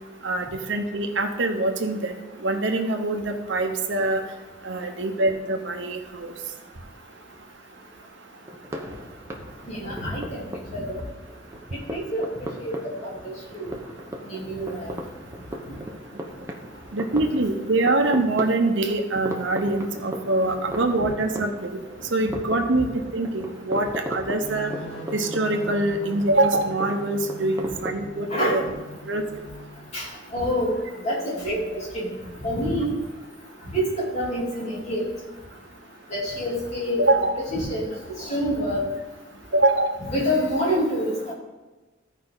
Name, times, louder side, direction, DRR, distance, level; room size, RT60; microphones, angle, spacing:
voice 1, 0.2-2.1 2.4-4.2 4.6-6.3 16.9-21.7 22.1-24.7 25.1-28.6 29.1-29.4 37.0-37.3 39.5-39.9, right 2 dB, 75° right, 4 dB, 1.0 m, -24 dB
sound 1, 8.4-27.9, equal, 15° right, 0.9 m, -38 dB
voice 2, 9.6-10.4 10.7-11.0 11.9-12.3 12.6-12.7 13.0-13.3 13.6-13.7 14.3-14.9 28.3-28.6 29.9-30.7 31.0-32.1 32.4-32.9 33.7-35.0 36.1-37.0 37.4-38.8 40.1-41.3, equal, 35° left, -6 dB, 3.2 m, -27 dB
sound 2, 24.4-29.9, left 1 dB, 80° left, 1.0 m, -40 dB
14.5 x 5.1 x 4.0 m, 1.2 s
head